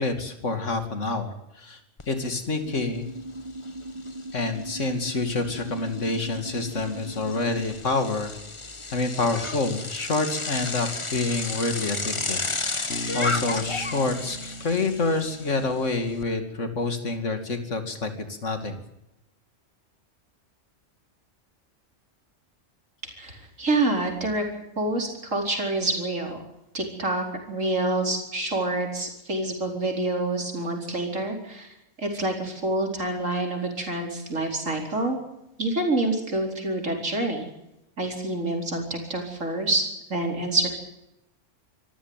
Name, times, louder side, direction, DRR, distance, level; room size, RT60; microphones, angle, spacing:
voice 1, 0.0-1.8 2.1-3.1 4.3-8.3 8.9-12.5 13.1-18.8, left 3 dB, 75° left, 7 dB, 2.9 m, -27 dB
Bicycle, 2.0-2.1 2.5-16.2, left 3 dB, 25° left, 1.3 m, -34 dB
sound 1, 2.7-7.7, right 1 dB, 20° right, 4.7 m, -38 dB
Bass guitar, 12.9-16.8, equal, 55° left, 1.7 m, -39 dB
voice 2, 23.0-24.5 24.8-26.4 26.7-35.2 35.6-37.5 38.0-39.8 40.1-40.7, right 2 dB, 85° right, 2 dB, 4.9 m, -27 dB
26.0 x 14.5 x 8.9 m, 0.88 s
omnidirectional pair, 1.3 m